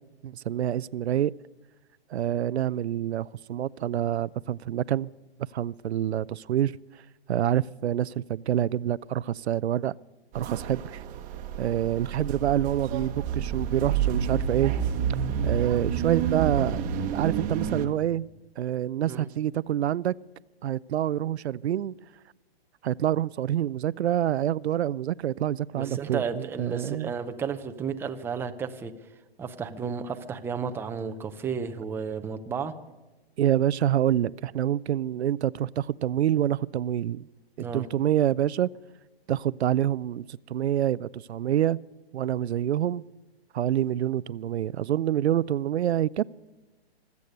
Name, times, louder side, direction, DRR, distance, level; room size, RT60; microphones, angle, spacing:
voice 1, 0.2-1.3 2.1-5.1 5.5-6.7 7.3-9.9 10.3-11.0 11.6-14.7 15.4-16.8 17.1-18.3 18.6-20.1 20.6-21.9 22.8-27.1 33.4-37.3 37.6-38.7 39.3-41.8 42.1-43.0 43.5-46.2, right 11 dB, 85° right, 0.5 m, -27 dB
sound 1, 10.3-17.9, right 8 dB, 25° right, 1.1 m, -29 dB
voice 2, 25.7-28.9 29.4-32.7 37.6-37.8, right 6 dB, 5° right, 0.6 m, -33 dB
24.5 x 8.4 x 6.6 m
hypercardioid pair, 135°, 32 cm